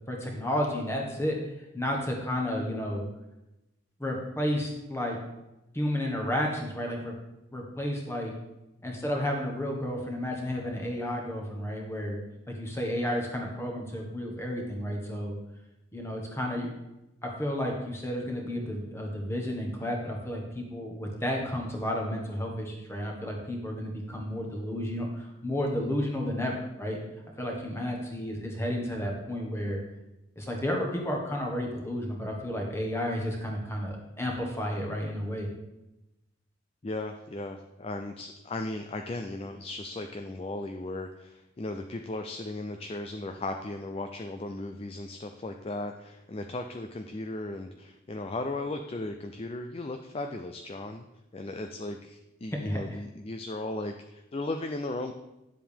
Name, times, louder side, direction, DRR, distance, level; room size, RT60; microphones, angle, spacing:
voice 1, 0.1-1.4 1.7-3.0 4.0-5.2 5.7-7.1 7.5-8.3 8.8-12.2 12.5-15.3 15.9-16.7 17.2-27.0 27.4-29.8 30.4-35.5 52.6-52.8, left 1 dB, 15° left, 0 dB, 1.5 m, -32 dB
voice 2, 36.8-51.1 51.3-55.1, left 2 dB, 30° left, 5 dB, 0.4 m, -36 dB
10.5 x 7.5 x 3.6 m, 0.95 s
head